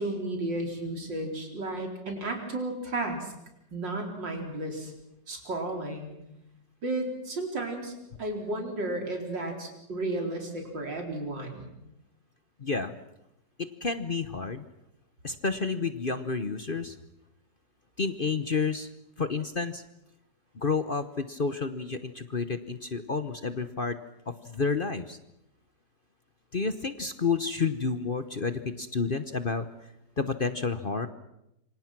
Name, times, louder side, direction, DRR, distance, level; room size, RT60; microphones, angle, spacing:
voice 1, 0.0-3.3 3.7-4.9 5.3-6.1 6.8-7.9 8.2-11.7, right 2 dB, 90° right, 2 dB, 5.0 m, -33 dB
voice 2, 12.6-12.9 13.6-14.6 15.2-16.9 18.0-18.9 19.2-19.8 20.5-24.0 24.4-25.2 26.5-29.6 30.2-31.1, left 4 dB, 40° left, 10 dB, 0.9 m, -30 dB
27.0 x 25.0 x 6.1 m, 0.85 s
omnidirectional pair, 1.9 m